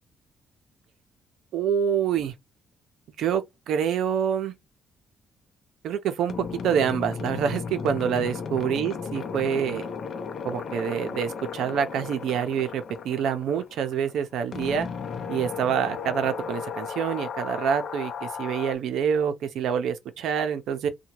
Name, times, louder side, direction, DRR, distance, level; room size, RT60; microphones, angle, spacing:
voice 1, 1.5-2.3 3.2-4.5 5.8-9.9 10.4-14.9 15.3-20.9, right 8 dB, 80° right, 0.5 m, -26 dB
sound 1, 6.3-18.8, left 6 dB, 55° left, 0.6 m, -35 dB
2.7 x 2.2 x 2.9 m
cardioid pair, 90°, 0 cm